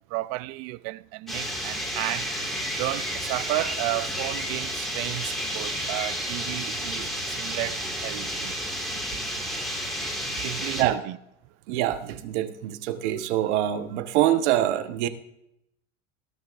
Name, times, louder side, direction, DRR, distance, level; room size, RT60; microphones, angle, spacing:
voice 1, 0.1-2.3 2.8-8.5 10.4-11.2, right 20 dB, 45° right, 0.4 m, -32 dB
sound 1, 1.3-10.8, equal, ahead, 2.1 m, -31 dB
voice 2, 11.7-15.1, right 12 dB, 70° right, 1.3 m, -25 dB
20.0 x 12.5 x 2.6 m
supercardioid pair, 150°, 35 cm